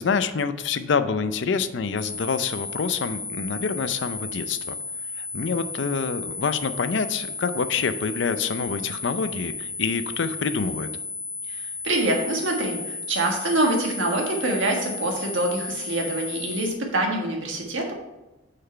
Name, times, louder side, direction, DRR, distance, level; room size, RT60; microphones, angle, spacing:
voice 1, 0.0-4.8 5.2-10.9, left 5 dB, 65° left, 12 dB, 0.5 m, -26 dB
sound 1, 2.0-16.7, left 3 dB, 50° left, 1.3 m, -34 dB
voice 2, 11.5-17.9, right 1 dB, 90° right, 1 dB, 1.6 m, -25 dB
6.6 x 5.9 x 4.4 m, 1.0 s
head